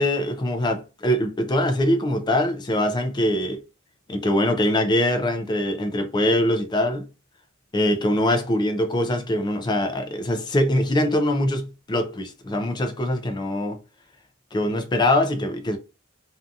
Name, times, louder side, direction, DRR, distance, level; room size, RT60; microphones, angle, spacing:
voice 1, 0.0-3.6 4.1-7.1 7.7-13.8 14.5-15.8, left 1 dB, 20° left, 0.4 m, -23 dB
2.7 x 2.3 x 2.5 m
head